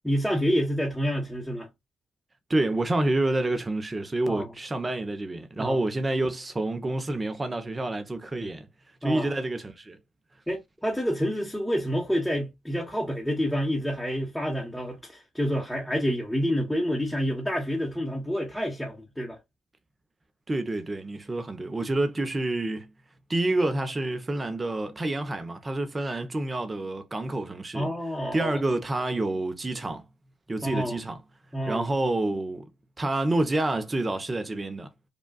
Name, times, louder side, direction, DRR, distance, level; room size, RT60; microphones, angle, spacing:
voice 1, 0.0-1.7 4.3-4.5 5.6-5.8 9.0-9.3 10.5-19.4 27.7-28.6 30.6-31.0 31.5-31.9, equal, ahead, 1.0 m, -28 dB
voice 2, 2.5-8.7 9.0-10.0 20.5-22.9 23.3-27.9 28.3-30.0 30.5-31.2 31.7-32.7 33.0-34.9, right 2 dB, 20° right, 0.7 m, -28 dB
5.1 x 2.3 x 2.2 m
cardioid pair, 90°, 0 cm